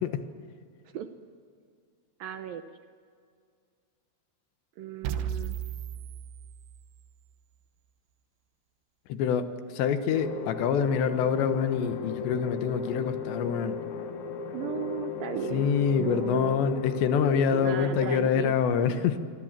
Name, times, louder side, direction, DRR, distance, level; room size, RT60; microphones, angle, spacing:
voice 1, 2.2-2.6 4.8-5.6 14.5-15.7 16.0-16.6 17.5-18.5, right 10 dB, 75° right, 8 dB, 2.2 m, -35 dB
sound 1, 5.0-7.1, right 9 dB, 90° right, 3.3 m, -35 dB
voice 2, 9.1-9.5 9.7-13.8 15.5-19.2, left 7 dB, 80° left, 9 dB, 3.5 m, -26 dB
sound 2, 10.1-18.2, left 6 dB, 55° left, 2.4 m, -36 dB
26.0 x 24.5 x 7.5 m, 2.2 s
omnidirectional pair, 5.0 m